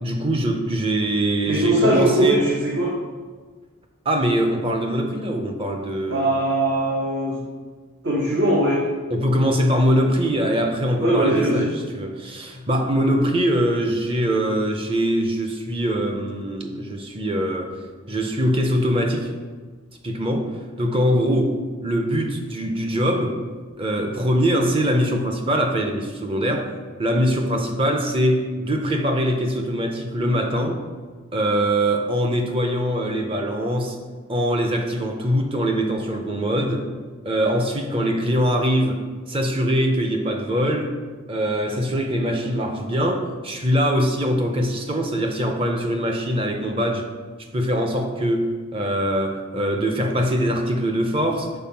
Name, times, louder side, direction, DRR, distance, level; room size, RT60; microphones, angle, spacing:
voice 1, 0.0-2.4 4.0-6.3 9.1-17.7 18.1-19.3 20.0-21.6 21.8-23.4 23.8-26.7 27.0-30.8 31.3-34.0 34.3-36.9 37.2-40.9 41.3-47.1 47.5-51.5, equal, 25° right, 4 dB, 0.6 m, -22 dB
voice 2, 1.5-3.0 6.1-7.4 8.0-8.8 11.0-11.7, right 1 dB, 55° right, -4 dB, 1.0 m, -20 dB
5.7 x 4.2 x 5.7 m, 1.5 s
head